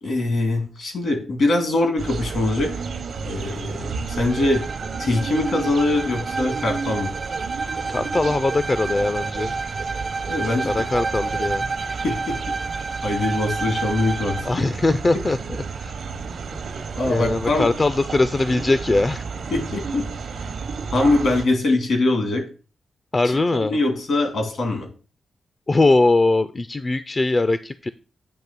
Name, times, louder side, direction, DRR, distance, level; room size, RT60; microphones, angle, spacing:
voice 1, 0.0-2.8 3.2-4.7 5.0-7.1 10.3-10.9 12.0-12.5 13.0-14.6 16.9-17.7 19.5-20.1 20.4-20.5 20.9-22.4 23.2-24.9, left 2 dB, 75° left, 4 dB, 2.7 m, -23 dB
sound 1, 2.0-21.5, right 5 dB, 75° right, 0.8 m, -32 dB
Bowed string instrument, 4.1-14.6, right 4 dB, 40° right, 0.4 m, -30 dB
voice 2, 7.9-9.5 10.6-11.7 14.5-15.9 16.3-16.6 17.1-19.2 23.1-23.8 25.7-27.9, left 2 dB, 40° left, 12 dB, 0.4 m, -21 dB
8.7 x 3.2 x 6.0 m, 0.36 s
cardioid pair, 60°, 0 cm